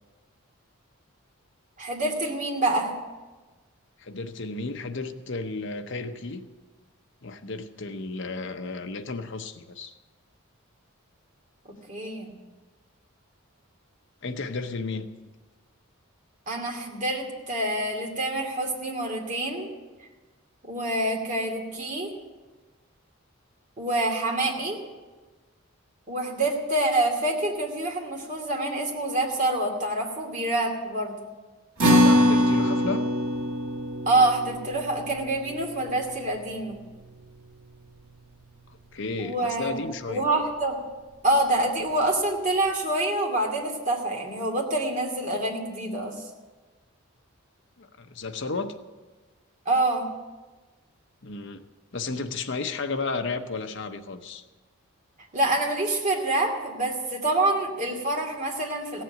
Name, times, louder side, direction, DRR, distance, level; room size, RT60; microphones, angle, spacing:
voice 1, 1.8-2.9 11.9-12.3 16.5-19.7 20.6-22.1 23.8-24.8 26.1-31.3 34.1-36.8 39.2-39.8 40.1-40.8 41.2-46.2 49.7-50.1 55.3-59.0, right 2 dB, 35° right, -1 dB, 2.4 m, -26 dB
voice 2, 4.0-6.5 7.2-10.0 14.2-15.1 31.9-33.0 38.9-40.2 47.8-48.7 51.2-51.6 51.9-54.4, left 3 dB, 55° left, 8 dB, 0.8 m, -33 dB
sound 1, 31.8-38.4, equal, 80° right, 2.1 m, -25 dB
16.5 x 7.6 x 9.1 m, 1.3 s
head